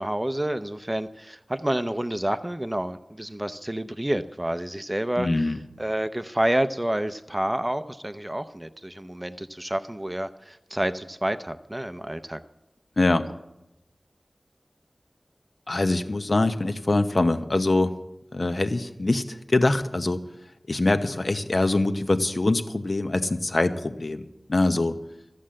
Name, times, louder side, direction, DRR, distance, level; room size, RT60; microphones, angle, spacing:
voice 1, 0.0-5.5 5.8-12.4, right 1 dB, 20° right, 9 dB, 0.6 m, -29 dB
voice 2, 5.2-5.6 13.0-13.2 15.7-17.9 18.3-20.2 20.7-24.9, left 2 dB, 60° left, 8 dB, 0.9 m, -24 dB
13.5 x 8.5 x 7.6 m, 0.90 s
wide cardioid pair, 60°, 0 cm